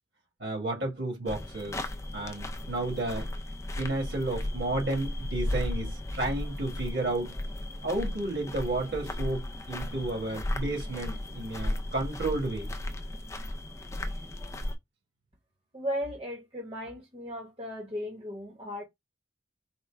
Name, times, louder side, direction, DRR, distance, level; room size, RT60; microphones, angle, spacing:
voice 1, 0.4-1.9 2.1-3.3 3.8-7.3 7.8-12.7, right 2 dB, 70° right, 2.0 m, -32 dB
sound 1, 1.3-14.8, left 1 dB, 15° left, 0.4 m, -35 dB
voice 2, 15.7-18.8, equal, 30° right, 1.1 m, -36 dB
4.2 x 2.2 x 3.4 m
head